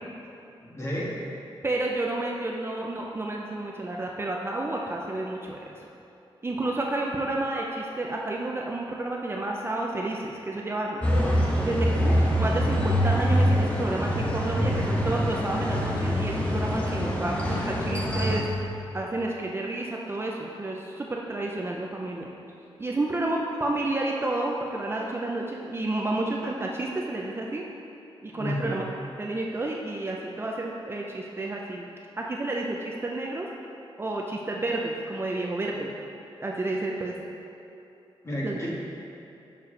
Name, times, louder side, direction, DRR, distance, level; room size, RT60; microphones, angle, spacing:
voice 1, 0.6-1.1 28.3-28.8 38.2-38.7, equal, 30° left, -5 dB, 1.5 m, -31 dB
voice 2, 1.6-5.6 6.4-11.0 11.6-18.4 18.9-22.3 22.8-27.6 28.2-28.8 29.2-31.9 32.2-33.5 34.0-35.9 36.4-37.2 38.4-38.7, right 2 dB, 25° right, -1 dB, 0.5 m, -30 dB
sound 1, 11.0-18.4, equal, 15° left, 0.9 m, -25 dB
6.8 x 6.6 x 3.2 m, 2.8 s
wide cardioid pair, 115°, 10 cm